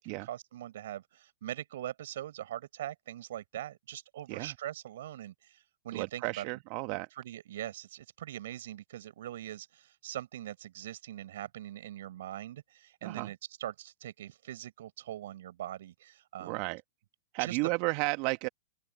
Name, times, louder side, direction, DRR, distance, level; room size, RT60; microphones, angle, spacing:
voice 1, 0.0-6.4 7.2-16.6 17.4-17.6, right 12 dB, 65° right, 5.6 m, -42 dB
voice 2, 5.9-7.1 13.0-13.3 16.4-16.8 17.3-18.5, right 28 dB, 45° right, 1.1 m, -33 dB
open air
hypercardioid pair, 105°, 0 cm